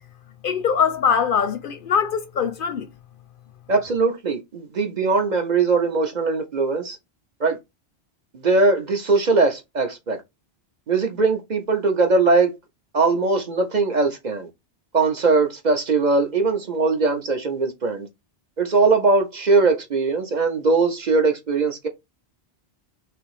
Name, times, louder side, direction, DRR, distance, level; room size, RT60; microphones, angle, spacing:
voice 1, 0.4-2.9, left 7 dB, 60° left, 0.7 m, -22 dB
voice 2, 3.7-7.0 7.4-7.6 8.3-10.2 10.9-12.5 12.9-14.5 14.9-18.1 18.6-21.9, right 3 dB, 45° right, 0.8 m, -20 dB
3.4 x 3.0 x 4.8 m
omnidirectional pair, 1.1 m